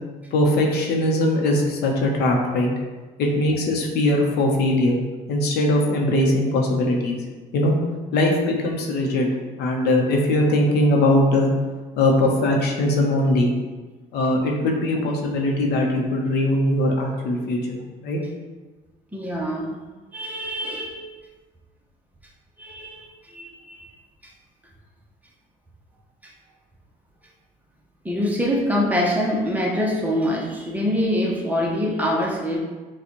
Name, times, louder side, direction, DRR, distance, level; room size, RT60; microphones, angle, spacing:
voice 1, 0.3-2.7 3.2-5.0 5.3-7.2 7.5-7.7 8.1-9.3 9.6-11.5 12.0-13.5 14.1-18.2, left 1 dB, 75° left, 0 dB, 0.9 m, -20 dB
voice 2, 19.1-19.8 20.1-21.0 22.6-23.9 26.2-26.3 28.0-32.6, equal, 10° right, -3 dB, 0.8 m, -24 dB
5.9 x 2.4 x 3.0 m, 1.3 s
cardioid pair, 110°, 17 cm